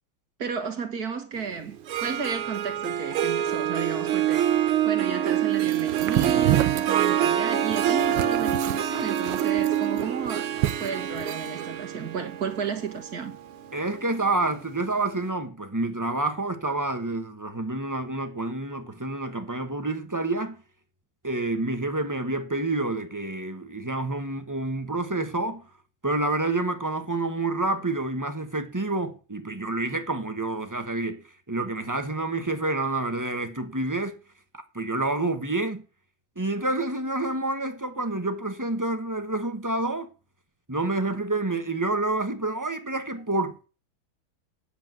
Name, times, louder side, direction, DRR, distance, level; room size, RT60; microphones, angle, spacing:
voice 1, 0.4-4.4 4.8-10.5 10.8-13.4, right 6 dB, 50° right, 2.0 m, -33 dB
Harp, 1.7-14.7, right 10 dB, 90° right, 1.9 m, -26 dB
sound 1, 5.6-11.5, right 13 dB, 70° right, 1.3 m, -29 dB
voice 2, 13.7-20.6 21.2-25.7 26.0-34.2 34.5-35.8 36.4-40.1 40.7-43.6, right 2 dB, 15° right, 0.7 m, -28 dB
8.8 x 8.2 x 9.1 m
omnidirectional pair, 2.3 m